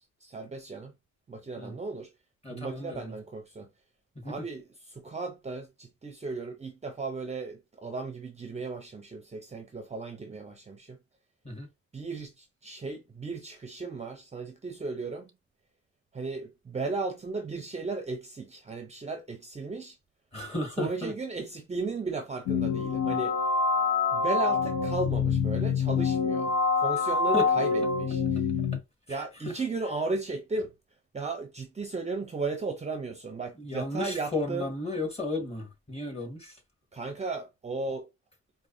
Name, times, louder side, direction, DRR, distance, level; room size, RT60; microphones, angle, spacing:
voice 1, 0.2-0.9 1.3-2.1 2.5-3.7 4.2-11.0 11.9-15.3 16.1-20.0 20.8-23.4 24.1-28.4 29.1-30.7 31.1-34.7 36.9-38.1, right 3 dB, 20° right, 0.6 m, -35 dB
voice 2, 2.4-3.2 4.2-4.3 11.4-11.7 20.3-21.1 27.0-27.4 29.1-29.5 33.6-36.6, left 2 dB, 20° left, 1.6 m, -34 dB
sound 1, 22.5-28.8, left 5 dB, 80° left, 0.9 m, -26 dB
4.6 x 2.2 x 2.6 m
cardioid pair, 90°, 30 cm